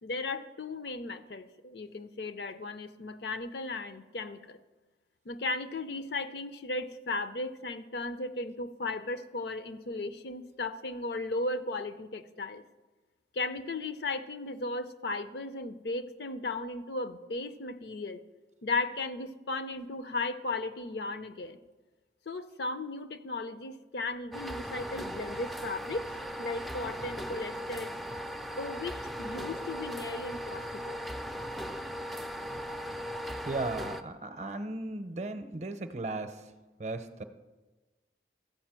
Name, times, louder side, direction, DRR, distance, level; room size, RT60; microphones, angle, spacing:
voice 1, 0.0-4.6 5.3-12.6 13.3-18.2 18.6-21.6 22.3-26.1 26.4-27.9 28.6-31.0, left 2 dB, 65° left, 11 dB, 0.6 m, -36 dB
sound 1, 24.3-34.0, equal, ahead, 0.3 m, -38 dB
voice 2, 33.5-36.4 36.8-37.2, right 2 dB, 40° right, 9 dB, 0.6 m, -36 dB
13.5 x 5.1 x 7.4 m, 1.2 s
head